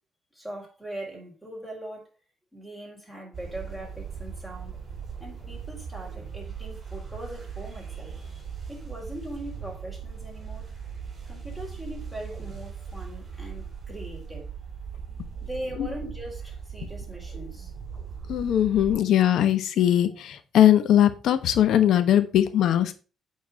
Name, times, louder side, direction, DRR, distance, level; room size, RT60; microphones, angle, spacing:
voice 1, 0.3-2.1 2.5-4.8 5.2-8.4 8.7-10.7 11.3-14.5 15.4-17.7 20.1-20.2, right 1 dB, 5° right, 4.2 m, -40 dB
sound 1, 3.3-19.0, right 6 dB, 40° right, 5.6 m, -39 dB
voice 2, 18.3-22.9, left 11 dB, 75° left, 1.2 m, -20 dB
8.6 x 4.7 x 5.7 m
cardioid pair, 90°, 0 cm